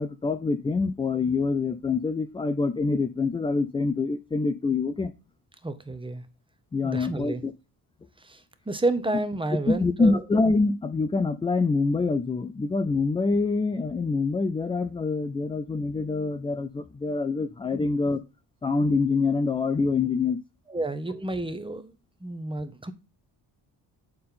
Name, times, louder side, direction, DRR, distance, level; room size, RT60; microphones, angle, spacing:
voice 1, 0.0-5.1 6.7-7.5 9.7-18.2 18.6-20.4, left 4 dB, 15° left, 0.3 m, -25 dB
voice 2, 5.6-6.2 6.8-7.4 8.2-10.2 17.7-17.9 20.7-21.9 22.2-22.9, right 2 dB, 10° right, 0.7 m, -30 dB
7.6 x 4.3 x 3.7 m
cardioid pair, 90°, 44 cm